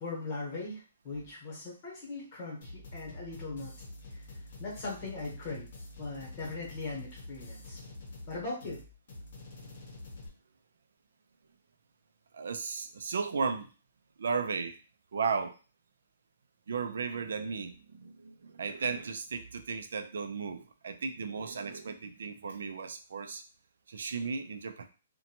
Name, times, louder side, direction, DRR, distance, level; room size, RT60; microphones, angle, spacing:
voice 1, 0.0-3.7 4.1-4.2 4.6-5.7 6.0-7.8 8.3-8.8, left 3 dB, 25° left, -4 dB, 1.0 m, -39 dB
sound 1, 2.6-10.3, left 2 dB, 45° left, 0.8 m, -47 dB
voice 2, 12.3-13.7 14.2-14.8 15.1-15.6 16.7-23.4 23.9-24.9, right 5 dB, 70° right, 8 dB, 0.4 m, -35 dB
2.7 x 2.2 x 2.8 m, 0.35 s
hypercardioid pair, 175°, 0 cm